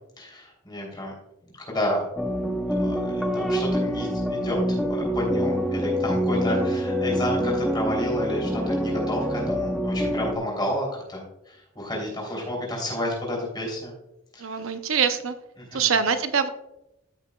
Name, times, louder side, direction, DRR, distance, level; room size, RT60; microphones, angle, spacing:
voice 1, 0.2-1.1 1.7-2.0 2.8-13.9 14.3-14.5 15.7-15.9, left 1 dB, 20° left, -2 dB, 3.2 m, -30 dB
sound 1, 2.2-10.4, equal, ahead, 0.7 m, -26 dB
voice 2, 14.4-15.3 15.7-16.5, right 6 dB, 75° right, 9 dB, 0.7 m, -24 dB
14.0 x 6.6 x 2.3 m, 0.85 s
head